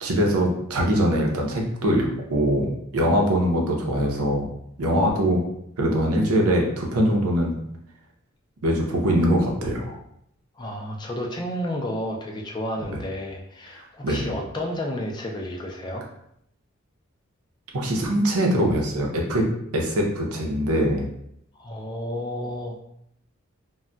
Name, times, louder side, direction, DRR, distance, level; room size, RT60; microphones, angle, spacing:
voice 1, 0.0-4.4 4.8-5.4 5.8-7.6 8.6-10.0 12.9-13.0 14.0-14.3 17.7-19.4 19.7-21.1, equal, 90° right, 0 dB, 0.6 m, -22 dB
voice 2, 10.6-16.1 21.6-22.8, left 1 dB, 20° left, 0 dB, 0.3 m, -31 dB
2.2 x 2.2 x 3.7 m, 0.75 s
head